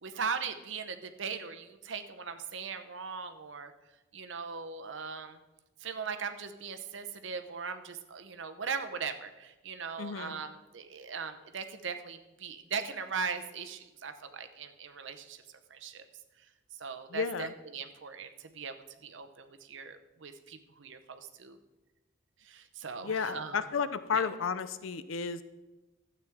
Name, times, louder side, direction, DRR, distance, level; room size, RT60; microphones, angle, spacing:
voice 1, 0.0-3.7 4.1-5.4 5.8-16.1 16.7-18.7 19.0-21.6 22.4-23.6 24.1-24.3, right 5 dB, 70° right, 8 dB, 0.8 m, -39 dB
voice 2, 10.0-10.3 17.1-17.5 23.0-25.4, left 6 dB, 85° left, 13 dB, 0.5 m, -32 dB
12.5 x 8.1 x 3.5 m, 1.1 s
head